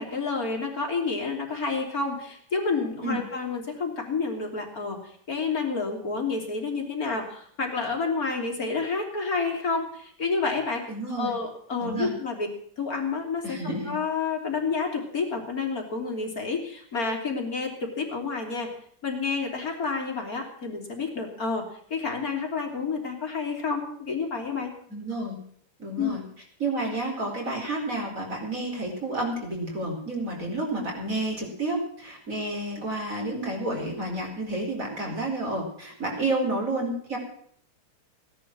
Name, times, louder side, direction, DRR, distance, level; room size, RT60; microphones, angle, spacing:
voice 1, 0.0-10.9 11.2-12.5 12.8-18.7 19.0-24.7 26.0-26.2, left 4 dB, 40° left, 2 dB, 3.8 m, -29 dB
voice 2, 10.9-11.3 11.8-12.1 13.4-13.9 24.9-25.4 25.8-26.2 26.6-37.2, right 2 dB, 40° right, 0 dB, 5.2 m, -30 dB
17.5 x 11.0 x 6.2 m, 0.63 s
omnidirectional pair, 2.3 m